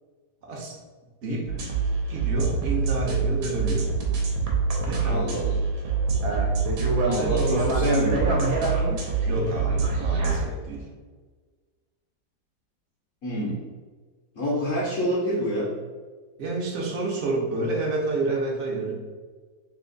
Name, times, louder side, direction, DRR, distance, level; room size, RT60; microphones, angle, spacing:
voice 1, 0.4-0.8 1.2-1.6 2.1-3.9 4.8-5.3 7.2-7.7 9.3-10.9 16.4-18.9, right 2 dB, 55° right, -2 dB, 0.8 m, -29 dB
sound 1, 1.5-10.4, right 4 dB, 85° right, 1.5 m, -25 dB
voice 2, 5.1-5.6 7.0-8.6 13.2-13.6 14.4-15.7, equal, 60° left, -6 dB, 0.9 m, -27 dB
3.4 x 2.8 x 3.9 m, 1.4 s
omnidirectional pair, 2.1 m